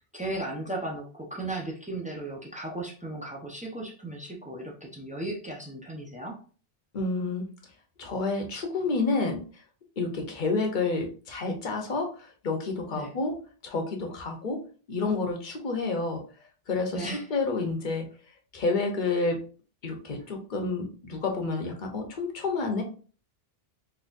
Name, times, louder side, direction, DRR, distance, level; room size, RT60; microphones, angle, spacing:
voice 1, 0.1-6.4 12.9-13.1 16.9-17.3, right 2 dB, 10° right, -1 dB, 0.5 m, -36 dB
voice 2, 6.9-7.4 8.0-9.6 10.0-13.4 13.6-14.6 14.9-16.2 16.7-18.1 18.5-19.4 19.8-22.8, left 3 dB, 50° left, 2 dB, 0.9 m, -29 dB
3.9 x 2.8 x 2.5 m, 0.38 s
omnidirectional pair, 1.0 m